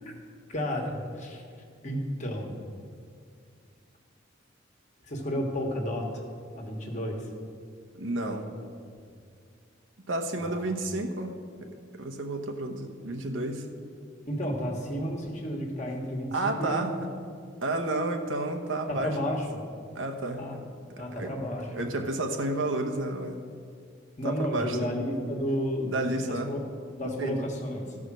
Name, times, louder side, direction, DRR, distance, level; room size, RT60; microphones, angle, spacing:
voice 1, 0.5-1.4 1.8-2.6 5.1-6.1 6.5-7.3 9.0-9.1 10.4-10.6 14.3-17.0 18.9-19.6 20.4-20.6 21.0-21.7 24.2-26.6 26.9-27.9, equal, 40° left, 1 dB, 1.4 m, -32 dB
voice 2, 7.9-8.5 10.1-11.3 11.6-13.7 16.3-17.1 17.6-19.2 19.9-20.6 21.2-21.3 21.7-23.4 24.2-24.9 25.9-26.5 27.0-27.5, right 2 dB, 80° right, 4 dB, 1.0 m, -31 dB
14.0 x 4.9 x 6.2 m, 2.2 s
head